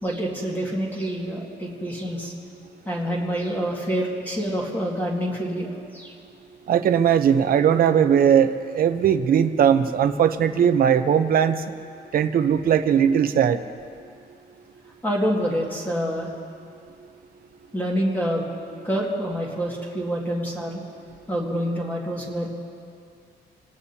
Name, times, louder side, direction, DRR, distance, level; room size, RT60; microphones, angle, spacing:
voice 1, 0.0-2.3 2.9-6.2 15.0-16.3 17.7-18.4 18.8-20.8 21.3-22.5, equal, 10° left, -4 dB, 2.0 m, -27 dB
voice 2, 6.7-11.6 12.1-13.6, right 8 dB, 55° right, 9 dB, 0.8 m, -19 dB
27.0 x 18.0 x 2.9 m, 2.3 s
cardioid pair, 165°, 18 cm